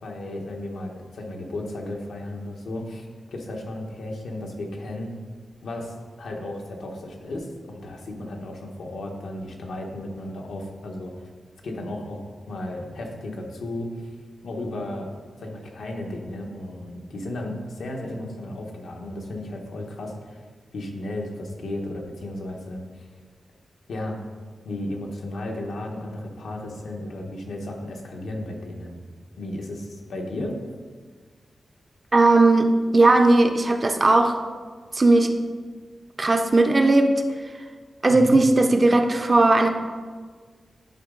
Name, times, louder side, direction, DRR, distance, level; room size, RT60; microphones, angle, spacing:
voice 1, 0.0-5.1 5.6-11.3 11.6-14.1 14.4-15.1 15.4-20.5 20.7-23.0 23.9-24.2 24.6-29.0 29.4-30.6 38.1-38.4, left 1 dB, 85° left, 1 dB, 1.1 m, -34 dB
voice 2, 32.1-34.4 34.9-35.3 36.2-37.1 38.0-39.7, right 2 dB, 25° right, 6 dB, 0.5 m, -17 dB
10.5 x 4.0 x 3.8 m, 1.5 s
wide cardioid pair, 165°, 0 cm